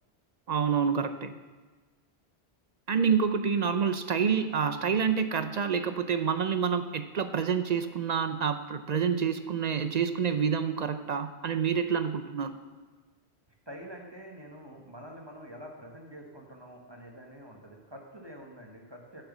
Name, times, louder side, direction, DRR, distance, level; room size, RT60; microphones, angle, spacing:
voice 1, 0.5-1.4 2.9-12.5, right 6 dB, 55° right, 10 dB, 0.5 m, -28 dB
voice 2, 13.7-19.2, equal, 25° right, 1 dB, 1.2 m, -46 dB
7.9 x 6.7 x 7.2 m, 1.4 s
omnidirectional pair, 1.1 m